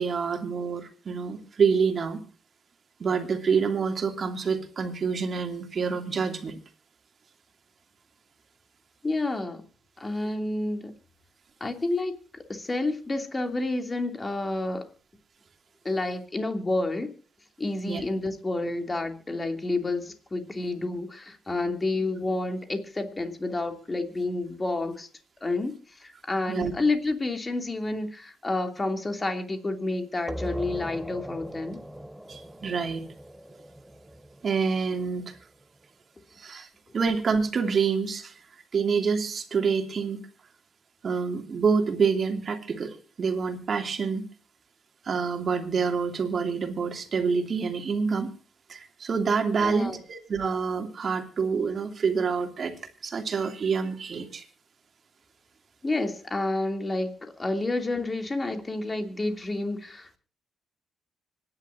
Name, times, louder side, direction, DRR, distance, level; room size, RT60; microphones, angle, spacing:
voice 1, 0.0-2.2 3.0-6.6 17.8-18.0 26.5-26.7 32.3-33.0 34.4-35.3 36.4-36.7 36.9-38.3 38.7-40.2 41.0-44.3 45.0-48.3 48.7-52.7 53.0-54.4, right 5 dB, 45° right, 5 dB, 2.7 m, -27 dB
voice 2, 9.0-9.6 10.0-10.9 11.6-14.8 15.8-17.1 17.6-25.1 25.4-31.8 49.6-50.0 55.8-60.2, left 2 dB, 25° left, 5 dB, 2.8 m, -29 dB
sound 1, 30.3-35.6, equal, 5° right, 1.0 m, -40 dB
25.5 x 10.5 x 2.7 m, 0.39 s
cardioid pair, 90°, 0 cm